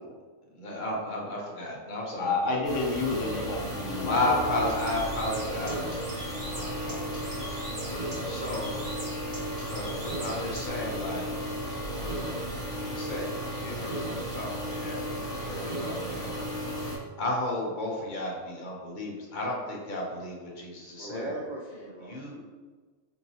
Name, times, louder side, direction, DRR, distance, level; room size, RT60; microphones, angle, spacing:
voice 1, 0.5-2.9 4.0-7.6 8.2-8.8 9.6-11.3 12.8-16.5 17.2-21.3 22.1-22.4, left 1 dB, 40° left, -3 dB, 0.8 m, -33 dB
voice 2, 2.2-4.3 8.5-8.7, left 3 dB, 65° left, -1 dB, 1.0 m, -30 dB
sound 1, 2.6-17.0, equal, 5° left, 0.7 m, -34 dB
Bird, 4.6-10.7, equal, 25° right, 1.2 m, -43 dB
voice 3, 21.0-22.4, right 1 dB, 80° right, -2 dB, 0.4 m, -39 dB
4.5 x 3.0 x 2.8 m, 1.4 s
omnidirectional pair, 1.4 m